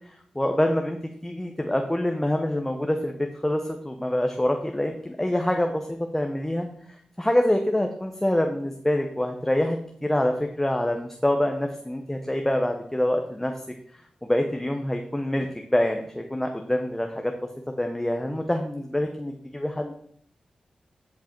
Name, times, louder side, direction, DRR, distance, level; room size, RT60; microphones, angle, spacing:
voice 1, 0.3-6.7 7.2-13.5 14.3-17.4 17.8-19.9, left 1 dB, 10° left, 4 dB, 0.9 m, -26 dB
10.0 x 5.3 x 4.5 m, 0.64 s
cardioid pair, 55°, 2 cm